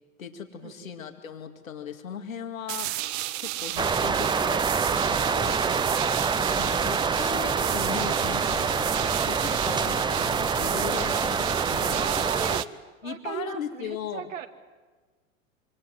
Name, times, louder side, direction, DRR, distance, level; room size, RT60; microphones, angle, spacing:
voice 1, 0.2-3.0 3.4-4.7 5.1-5.6 6.6-12.2 13.0-14.3, left 8 dB, 80° left, 5 dB, 2.3 m, -38 dB
sound 1, 2.7-12.7, right 16 dB, 50° right, 1.0 m, -33 dB
sound 2, 3.8-12.6, right 5 dB, 10° right, 0.7 m, -26 dB
voice 2, 5.5-6.0 11.9-12.6 13.0-14.5, right 9 dB, 70° right, 5 dB, 2.5 m, -37 dB
26.5 x 25.0 x 7.8 m, 1.4 s
hypercardioid pair, 95°, 40 cm